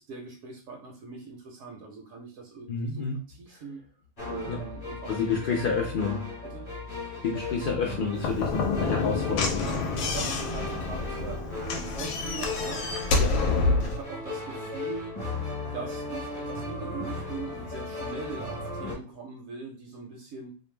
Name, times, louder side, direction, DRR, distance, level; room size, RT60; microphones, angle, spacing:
voice 1, 0.0-3.8 4.3-5.1 5.4-5.5 5.8-5.9 6.5-6.7 8.4-8.5 9.5-9.9 10.1-13.0 13.5-15.2 15.6-20.5, right 5 dB, 75° right, 1 dB, 0.9 m, -41 dB
voice 2, 2.7-3.2 4.5-4.6 5.1-6.2 7.2-9.6 13.2-13.3 13.8-13.9, left 5 dB, 70° left, -1 dB, 0.5 m, -29 dB
sound 1, 4.2-18.9, left 2 dB, 30° left, 1.1 m, -37 dB
Slam / Knock, 8.2-14.0, left 3 dB, 90° left, 1.0 m, -28 dB
2.4 x 2.1 x 3.1 m, 0.37 s
omnidirectional pair, 1.4 m